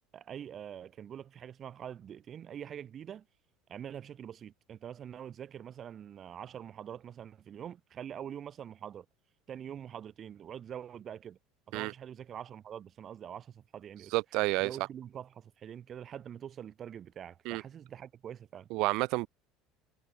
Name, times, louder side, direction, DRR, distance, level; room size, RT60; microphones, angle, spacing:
voice 1, 0.1-3.3 3.7-9.0 9.5-11.4 11.7-14.1 14.6-18.7, right 9 dB, 40° right, 3.2 m, -44 dB
voice 2, 14.1-14.9 17.5-17.6 18.7-19.3, right 23 dB, 65° right, 0.3 m, -30 dB
supercardioid pair, 120°, 0 cm